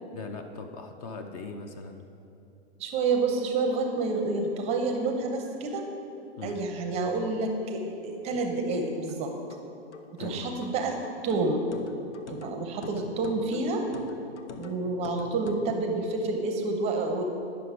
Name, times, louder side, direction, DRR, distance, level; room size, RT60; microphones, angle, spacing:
voice 1, 0.1-2.1 6.4-6.6 10.2-10.5, left 4 dB, 35° left, 6 dB, 0.5 m, -40 dB
voice 2, 2.8-5.8 6.4-9.3 10.1-11.0 11.2-11.6 12.3-13.9 14.6-17.2, right 3 dB, 20° right, 4 dB, 0.6 m, -29 dB
Pitched Percussion, 9.1-15.7, left 4 dB, 90° left, 0.8 m, -43 dB
9.7 x 6.1 x 4.7 m, 2.7 s
hypercardioid pair, 135°, 34 cm